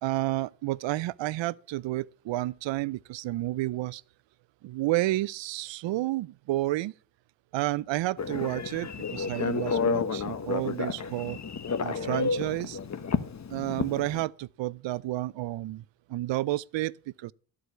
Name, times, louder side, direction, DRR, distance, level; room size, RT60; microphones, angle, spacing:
voice 1, 0.0-4.0 4.6-6.9 7.5-11.4 11.8-12.8 13.5-17.3, right 17 dB, 75° right, 0.5 m, -31 dB
Telephone, 8.2-14.2, left 5 dB, 35° left, 1.1 m, -31 dB
13.0 x 4.8 x 6.7 m
cardioid pair, 70°, 45 cm